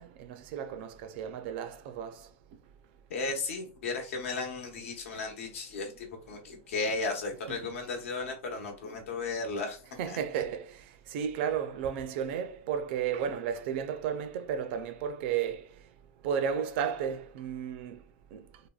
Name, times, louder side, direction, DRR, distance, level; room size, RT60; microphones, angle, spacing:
voice 1, 0.0-2.2 7.5-7.6 10.0-10.7 11.1-15.6 16.2-18.0 18.3-18.4, right 8 dB, 55° right, 0.4 m, -33 dB
voice 2, 3.1-9.8 10.1-10.2, left 3 dB, 75° left, 1.0 m, -35 dB
3.3 x 2.1 x 2.3 m
supercardioid pair, 140°, 7 cm